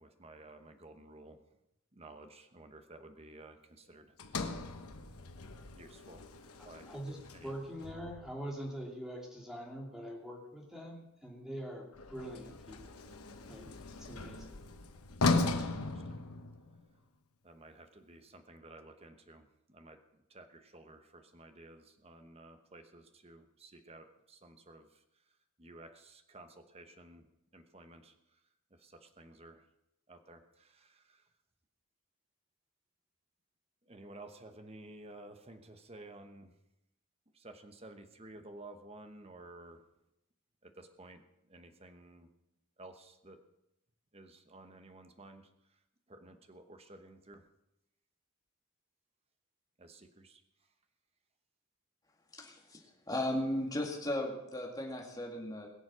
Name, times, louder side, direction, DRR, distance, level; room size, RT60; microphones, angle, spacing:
voice 1, 0.0-1.4 1.9-4.4 5.7-6.3 6.6-6.9 7.3-7.5 15.7-16.2 17.4-25.0 25.6-27.3 27.5-28.4 28.7-29.6 30.1-31.3 33.8-36.5 37.3-39.8 40.6-42.3 42.8-43.4 44.1-45.8 46.1-47.4 49.8-50.4, right 2 dB, 25° right, 7 dB, 1.1 m, -54 dB
Sliding door, 4.2-8.5 11.9-16.9, left 3 dB, 85° left, 1.1 m, -37 dB
voice 2, 6.6-13.0 13.5-13.7 14.0-14.5, right 1 dB, ahead, -1 dB, 2.6 m, -44 dB
voice 3, 52.3-55.7, left 1 dB, 15° left, 0 dB, 2.3 m, -36 dB
21.5 x 7.3 x 6.2 m, 0.87 s
head